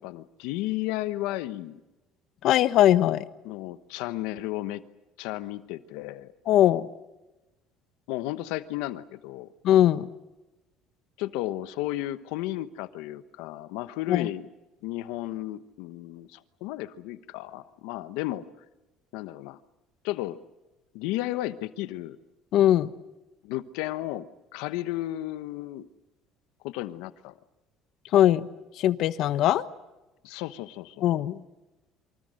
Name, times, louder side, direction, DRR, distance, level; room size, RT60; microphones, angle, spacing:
voice 1, 0.0-1.8 3.4-4.8 5.2-6.3 8.1-9.5 11.2-14.5 14.8-18.4 19.1-19.6 20.0-20.4 20.9-22.2 23.4-24.3 24.5-25.9 26.6-27.3 30.2-31.0, left 16 dB, 85° left, 13 dB, 1.1 m, -33 dB
voice 2, 2.4-3.2 6.5-6.9 9.6-10.1 14.1-14.3 22.5-22.9 28.1-28.5 28.8-29.6 31.0-31.4, left 12 dB, 60° left, 14 dB, 1.1 m, -20 dB
27.5 x 24.5 x 6.5 m, 1.1 s
cardioid pair, 125°, 0 cm